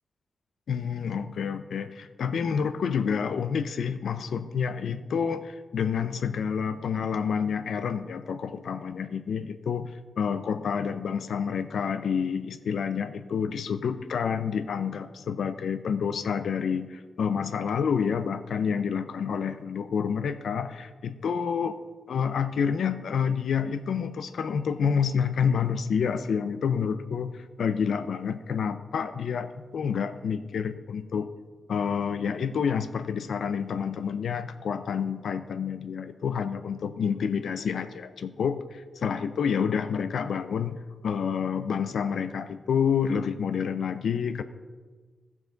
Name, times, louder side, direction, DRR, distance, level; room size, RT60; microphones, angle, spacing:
voice 1, 0.7-9.9 10.2-21.7 22.1-31.3 31.7-44.4, left 6 dB, 70° left, 10 dB, 0.5 m, -28 dB
15.5 x 7.3 x 3.9 m, 1.4 s
wide cardioid pair, 165°, 0 cm